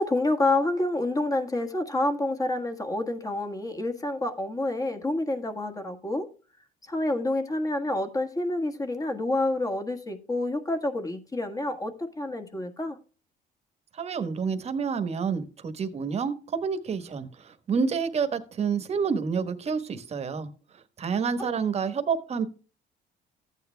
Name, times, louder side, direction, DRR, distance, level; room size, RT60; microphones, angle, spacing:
voice 1, 0.0-6.3 6.9-13.0 21.4-21.5, left 2 dB, 20° left, 1.5 m, -28 dB
voice 2, 13.9-20.5 21.0-22.4, right 6 dB, 40° right, 1.3 m, -28 dB
14.5 x 9.0 x 2.2 m
cardioid pair, 110°, 17 cm